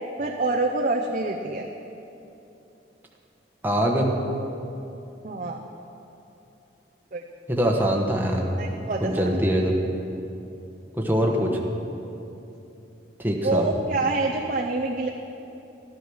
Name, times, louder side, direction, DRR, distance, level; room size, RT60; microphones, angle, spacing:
voice 1, 0.2-1.7 5.2-5.6 7.1-7.2 8.6-9.3 13.4-15.1, right 2 dB, 45° right, 1 dB, 0.6 m, -26 dB
voice 2, 3.6-4.1 7.5-8.5 8.8-9.7 11.0-11.6 13.2-13.7, equal, 10° right, 0 dB, 1.3 m, -23 dB
13.5 x 10.0 x 6.3 m, 2.9 s
head